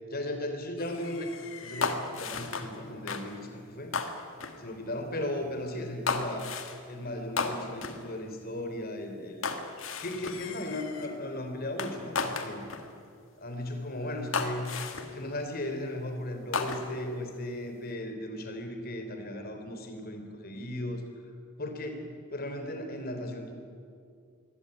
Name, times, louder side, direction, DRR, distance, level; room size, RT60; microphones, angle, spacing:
voice 1, 0.1-3.9 4.6-6.5 6.9-9.5 9.8-12.6 13.4-14.7 15.1-21.0 21.6-23.5, left 1 dB, 45° left, 6 dB, 3.4 m, -36 dB
sound 1, 0.8-2.8 3.1-3.3 3.9-4.6 6.1-6.8 7.4-8.0 9.4-11.1 11.8-12.9 13.6-13.7 14.3-15.2 16.5-17.1, left 4 dB, 70° left, 2.0 m, -34 dB
23.5 x 17.0 x 9.8 m, 2.3 s
head